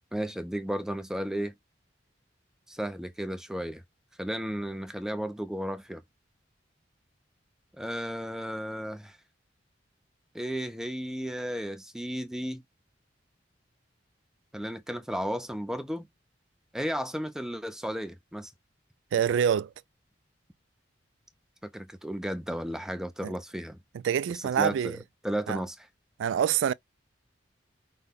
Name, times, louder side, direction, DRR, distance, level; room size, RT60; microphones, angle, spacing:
voice 1, 0.1-1.5 2.7-3.8 4.2-6.0 7.8-9.2 10.3-12.6 14.5-16.1 16.7-18.5 21.6-23.8 24.3-25.0 25.2-25.9, equal, 5° right, 0.5 m, -34 dB
voice 2, 19.1-19.7 23.2-23.3 24.0-25.0 25.5-25.6 26.2-26.7, right 8 dB, 85° right, 0.3 m, -25 dB
5.7 x 2.2 x 3.4 m
head